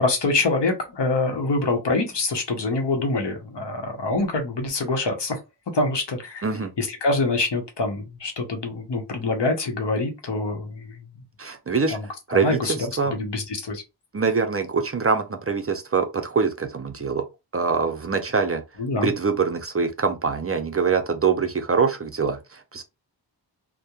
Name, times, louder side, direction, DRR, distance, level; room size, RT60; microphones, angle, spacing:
voice 1, 0.0-5.4 5.7-6.4 6.8-11.0 11.9-12.0 12.3-13.8 18.8-19.1, left 3 dB, 70° left, 0.8 m, -25 dB
voice 2, 11.4-12.0 12.3-13.1 14.1-17.2 17.5-18.6 19.0-22.8, right 5 dB, 35° right, 0.5 m, -24 dB
2.8 x 2.1 x 2.3 m
wide cardioid pair, 60°, 43 cm